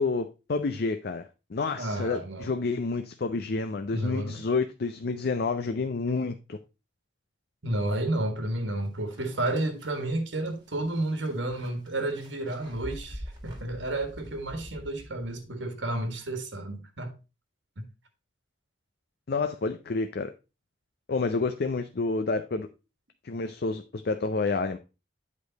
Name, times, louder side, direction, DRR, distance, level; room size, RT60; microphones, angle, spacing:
voice 1, 0.0-6.6 19.3-20.3 21.1-22.7 23.2-24.8, left 4 dB, 55° left, 0.5 m, -29 dB
voice 2, 1.7-2.5 3.9-4.4 7.6-17.1 17.8-17.9, right 1 dB, 85° right, 1.5 m, -31 dB
sound 1, 8.6-8.7 9.1-15.5, equal, 25° right, 1.7 m, -45 dB
8.4 x 5.1 x 4.0 m
head